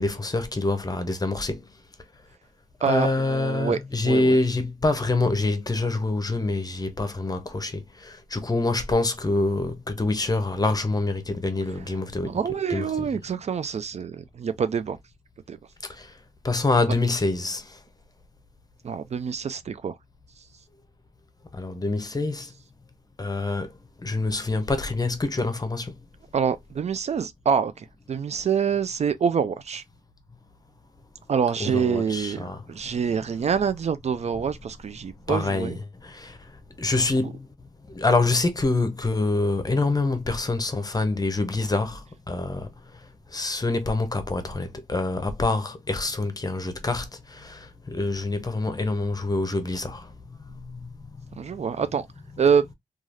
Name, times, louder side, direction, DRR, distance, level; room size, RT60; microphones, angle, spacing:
voice 1, 0.0-1.7 2.8-12.4 12.7-13.1 15.8-16.1 16.4-17.8 21.5-22.5 23.2-23.7 24.0-25.9 31.6-32.6 32.9-33.0 35.3-35.7 36.0-36.4 36.8-37.5 37.9-42.7 43.3-50.1 50.4-50.9 51.5-51.7, left 2 dB, 30° left, 0.7 m, -26 dB
voice 2, 2.8-3.8 4.0-4.4 12.2-15.0 15.5-15.6 18.8-19.9 26.3-29.8 31.3-35.8 37.2-37.3 51.3-52.1 52.4-52.6, right 7 dB, 50° right, 0.4 m, -26 dB
3.1 x 2.4 x 2.4 m
cardioid pair, 50°, 14 cm